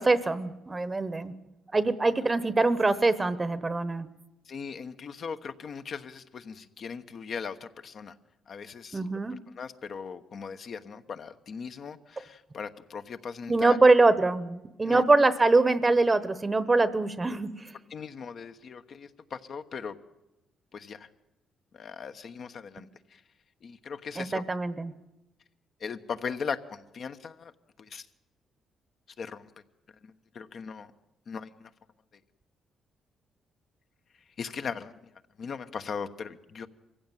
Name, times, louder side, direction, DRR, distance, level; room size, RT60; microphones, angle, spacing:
voice 1, 0.0-1.3 1.7-4.1 8.9-9.4 13.5-17.7 24.2-24.9, right 3 dB, 25° right, 15 dB, 1.1 m, -23 dB
voice 2, 4.5-8.1 8.5-9.2 9.6-13.8 14.8-15.0 17.9-20.0 20.7-21.1 21.7-23.2 23.6-24.4 25.8-27.5 27.8-28.1 29.2-29.5 30.0-30.9 31.3-31.7 34.4-34.9 35.4-36.7, left 6 dB, 55° left, 8 dB, 1.2 m, -39 dB
23.5 x 15.5 x 9.2 m, 0.95 s
cardioid pair, 90°, 0 cm